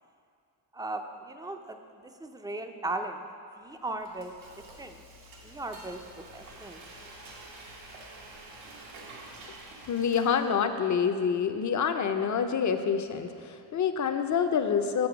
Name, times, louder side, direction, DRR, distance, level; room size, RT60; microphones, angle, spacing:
voice 1, 0.7-1.8 2.0-3.3 3.6-4.3 4.8-5.0 5.4-6.8, right 2 dB, 10° right, 6 dB, 0.4 m, -37 dB
Frying (food), 3.7-10.8, right 2 dB, 85° right, 1.4 m, -48 dB
voice 2, 9.9-15.1, left 7 dB, 40° left, 8 dB, 0.6 m, -27 dB
7.8 x 4.4 x 6.9 m, 2.3 s
cardioid pair, 85°, 46 cm